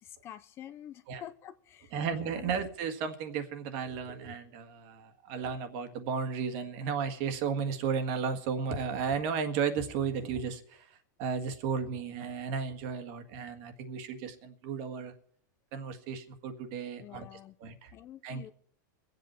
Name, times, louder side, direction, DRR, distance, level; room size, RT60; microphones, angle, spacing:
voice 1, 0.0-2.0 2.3-2.5 17.0-17.5 17.9-18.5, left 11 dB, 25° left, 11 dB, 0.5 m, -47 dB
voice 2, 1.9-10.9 11.2-15.1 15.7-17.9 18.2-18.5, right 6 dB, 45° right, 8 dB, 1.7 m, -34 dB
23.5 x 8.1 x 4.4 m, 0.63 s
supercardioid pair, 160°, 10 cm